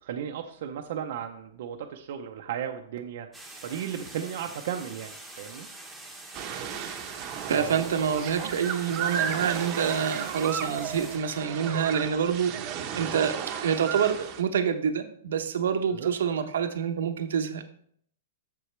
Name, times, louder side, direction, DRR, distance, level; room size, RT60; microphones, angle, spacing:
voice 1, 0.0-3.3 3.6-5.7 7.5-7.8 8.4-8.5 15.9-16.1, right 9 dB, 60° right, 3 dB, 0.6 m, -35 dB
sound 1, 3.3-11.2, right 2 dB, ahead, 1.2 m, -45 dB
sound 2, 6.3-14.4, right 8 dB, 35° right, 0.9 m, -34 dB
voice 2, 7.5-12.5 12.9-17.6, right 7 dB, 80° right, 7 dB, 0.8 m, -27 dB
7.9 x 6.9 x 3.3 m, 0.63 s
hypercardioid pair, 155°, 0 cm